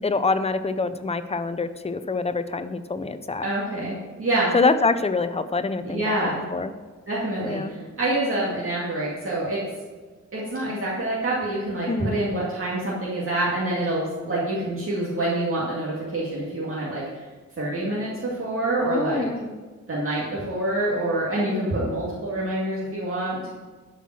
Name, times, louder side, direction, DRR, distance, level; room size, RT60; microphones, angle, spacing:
voice 1, 0.0-3.5 4.5-6.7 7.4-7.7 11.9-12.2 18.8-19.6 21.5-21.8, left 3 dB, 20° left, 10 dB, 0.5 m, -25 dB
voice 2, 3.4-4.5 5.8-6.4 7.1-9.6 10.3-17.3 17.6-19.3 19.9-23.4, right 1 dB, 45° right, -7 dB, 2.2 m, -26 dB
12.0 x 5.6 x 6.2 m, 1.4 s
wide cardioid pair, 135°, 29 cm